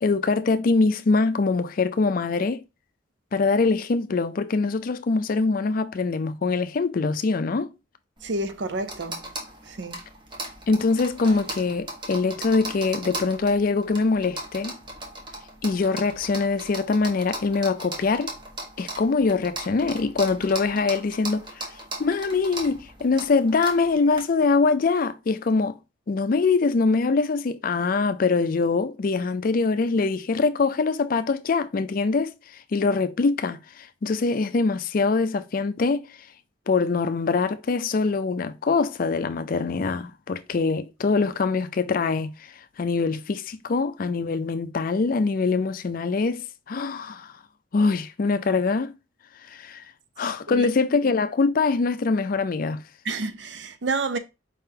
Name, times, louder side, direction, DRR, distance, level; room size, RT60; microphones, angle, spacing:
voice 1, 0.0-2.6 3.3-7.7 10.7-14.8 15.6-18.3 18.8-21.7 22.0-25.8 26.1-32.3 32.7-36.1 36.7-47.3 47.7-48.9 49.5-49.8 50.2-52.8, left 4 dB, 50° left, 0.4 m, -23 dB
sound 1, 8.2-24.2, right 1 dB, 25° right, 1.0 m, -38 dB
voice 2, 8.2-9.2 9.7-10.0 50.5-50.7 53.0-54.2, right 3 dB, 70° right, 0.6 m, -29 dB
4.8 x 3.7 x 2.7 m
head